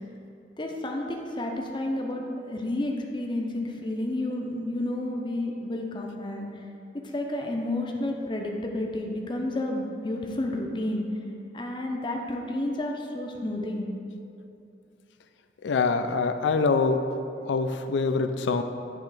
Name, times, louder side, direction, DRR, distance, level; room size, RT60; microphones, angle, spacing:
voice 1, 0.6-6.5 7.1-11.0 11.5-13.9, left 1 dB, 25° left, 1 dB, 0.5 m, -31 dB
voice 2, 15.6-17.1 17.5-18.6, left 4 dB, 85° left, 8 dB, 0.4 m, -24 dB
8.7 x 2.9 x 4.8 m, 2.6 s
head